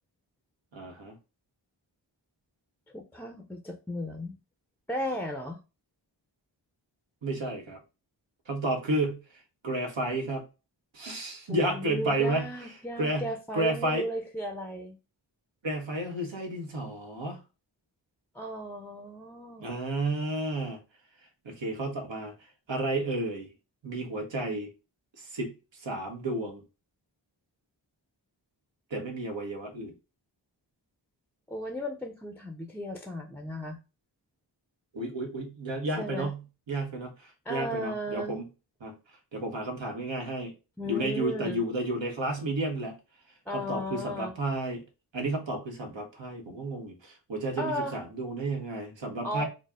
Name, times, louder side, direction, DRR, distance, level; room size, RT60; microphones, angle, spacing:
voice 1, 0.7-1.1 7.2-7.8 8.5-9.2 9.6-10.4 10.9-12.5 13.0-14.0 15.6-17.4 19.6-20.8 21.4-22.3 22.7-23.5 23.8-24.7 25.2-25.5 25.8-26.6 28.9-29.9 34.9-36.4 36.7-38.5 38.8-39.0 39.3-40.5 40.8-43.0 43.5-44.8 45.1-49.5, right 2 dB, 90° right, 1.2 m, -32 dB
voice 2, 2.9-4.3 4.9-5.6 11.5-15.0 18.3-19.8 31.5-33.8 36.0-36.3 37.5-38.4 40.8-41.6 43.5-44.3 47.6-48.0 49.2-49.4, equal, 5° left, 0.4 m, -35 dB
4.1 x 2.0 x 3.6 m
wide cardioid pair, 105°, 43 cm